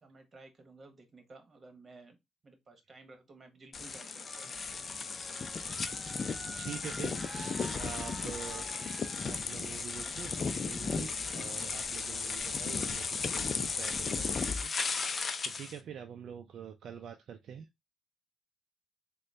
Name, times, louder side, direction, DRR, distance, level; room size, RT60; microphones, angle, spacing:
voice 1, 0.0-2.2 2.4-4.8, right 3 dB, 35° right, 1.2 m, -55 dB
sound 1, 3.7-15.8, left 4 dB, 40° left, 0.5 m, -35 dB
sound 2, 4.2-9.4, right 2 dB, 10° right, 0.5 m, -49 dB
voice 2, 6.6-8.7 9.2-17.7, right 8 dB, 65° right, 0.4 m, -46 dB
3.8 x 2.2 x 3.2 m
cardioid pair, 90°, 0 cm